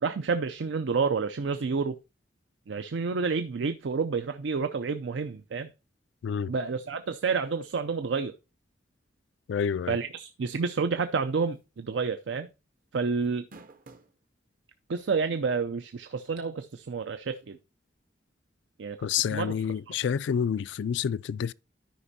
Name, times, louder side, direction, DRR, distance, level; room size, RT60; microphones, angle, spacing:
voice 1, 0.0-1.9 2.7-5.7 6.5-8.3 9.9-12.5 12.9-13.5 14.9-17.6 18.8-19.5, right 5 dB, 80° right, 0.5 m, -29 dB
voice 2, 9.5-10.0 19.0-21.5, left 7 dB, 75° left, 0.3 m, -28 dB
sound 1, 11.5-11.8 12.1-12.2 13.2-14.2 14.9-15.0 16.6-16.7, right 3 dB, 50° right, 0.8 m, -50 dB
13.0 x 5.2 x 2.7 m
head